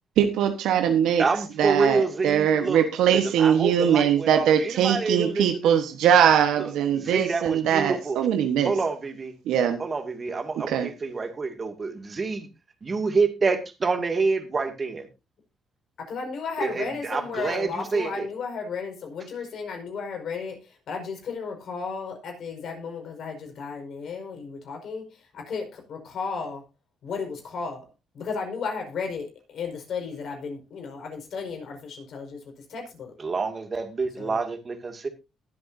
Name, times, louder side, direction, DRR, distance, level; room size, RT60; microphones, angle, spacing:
voice 1, 0.2-1.2 1.6-8.7 9.5-9.8 10.7-10.9, right 9 dB, 85° right, 6 dB, 1.2 m, -21 dB
voice 2, 1.2-5.7 6.6-8.2 8.6-9.3 9.8-12.5 12.8-15.1 16.6-18.3 33.2-35.1, right 4 dB, 35° right, 7 dB, 2.3 m, -27 dB
voice 3, 16.0-26.6 27.0-27.9 28.1-33.1 34.2-34.4, left 5 dB, 65° left, 3 dB, 5.2 m, -34 dB
21.0 x 7.8 x 2.7 m, 0.26 s
cardioid pair, 90°, 0 cm